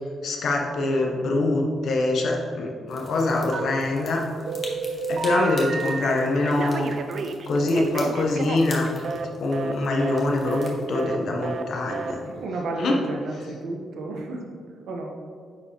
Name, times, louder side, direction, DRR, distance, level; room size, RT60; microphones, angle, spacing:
voice 1, 0.2-4.3 5.1-6.9 7.5-9.0 9.4-12.2 12.8-13.0, left 2 dB, 55° left, 0 dB, 0.8 m, -24 dB
sound 1, 2.9-11.0, left 2 dB, 30° left, 1.1 m, -44 dB
Telephone, 3.5-4.1 4.5-6.1 6.4-9.3 9.5-9.7 10.0-10.2 10.5-10.7 10.9-11.2 11.4-11.6 11.9-12.1, right 5 dB, 45° right, 0.4 m, -31 dB
voice 2, 12.2-14.5 14.9-15.2, right 2 dB, 75° right, 1 dB, 0.9 m, -32 dB
9.7 x 4.3 x 2.9 m, 2.2 s
wide cardioid pair, 165°, 0 cm